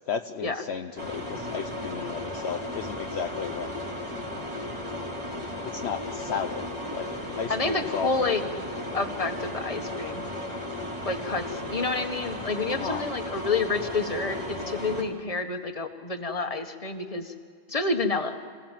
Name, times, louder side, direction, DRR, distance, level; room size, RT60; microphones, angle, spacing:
voice 1, 0.1-3.7 5.7-8.3 12.8-13.1, left 7 dB, 65° left, 7 dB, 1.0 m, -34 dB
sound 1, 1.0-15.0, left 1 dB, 25° right, 4.4 m, -35 dB
voice 2, 7.5-8.5 8.9-10.3 11.0-17.3 17.7-18.4, left 3 dB, 30° left, 5 dB, 1.6 m, -29 dB
26.5 x 17.0 x 7.4 m, 2.1 s
omnidirectional pair, 1.2 m